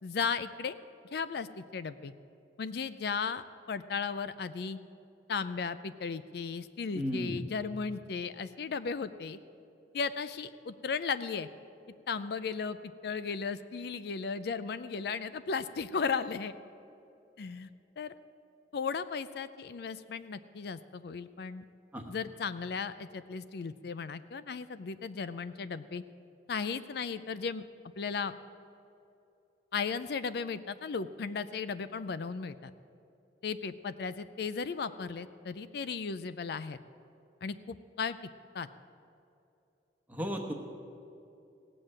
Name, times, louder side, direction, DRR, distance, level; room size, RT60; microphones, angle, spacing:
voice 1, 0.0-0.7 1.1-2.1 2.6-3.4 3.7-4.8 5.3-9.4 9.9-11.5 12.1-16.5 17.4-17.7 18.0-18.2 18.7-21.6 22.1-26.0 26.5-27.6 28.0-28.3 29.7-32.7 33.4-36.8 37.4-38.2 38.5-38.7, left 5 dB, 65° left, 13 dB, 0.4 m, -35 dB
voice 2, 6.9-7.4 21.9-22.1 40.1-40.5, equal, 10° right, 2 dB, 1.0 m, -34 dB
17.0 x 7.7 x 8.7 m, 2.7 s
head